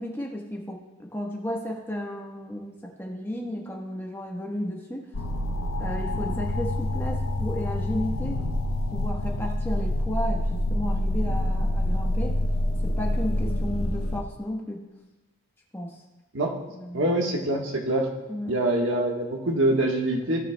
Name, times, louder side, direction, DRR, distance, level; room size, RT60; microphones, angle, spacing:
voice 1, 0.0-5.1 5.8-8.4 8.9-12.4 12.8-14.8 15.7-16.0 16.7-17.2 18.3-18.6, equal, 10° left, -1 dB, 1.2 m, -33 dB
sound 1, 5.1-14.2, left 1 dB, 85° left, 0.8 m, -27 dB
voice 2, 16.9-18.1 18.5-20.4, right 1 dB, 70° right, 1 dB, 1.4 m, -24 dB
17.0 x 7.0 x 2.3 m, 1.1 s
head